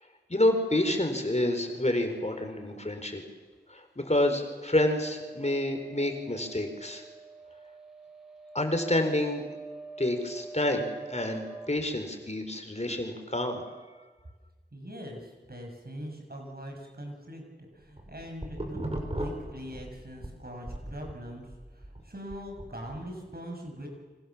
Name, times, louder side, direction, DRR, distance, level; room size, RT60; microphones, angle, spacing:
voice 1, 0.3-3.2 3.7-7.0 8.5-9.4 10.0-13.6, left 1 dB, 40° left, 6 dB, 4.4 m, -28 dB
sound 1, 4.7-11.7, right 3 dB, 5° right, 7.1 m, -46 dB
voice 2, 14.7-23.9, equal, 60° right, 2 dB, 7.0 m, -42 dB
sound 2, 17.8-20.3 20.7-23.0, right 1 dB, 35° right, 5.9 m, -37 dB
29.0 x 25.5 x 7.4 m, 1.3 s
wide cardioid pair, 40°, 18 cm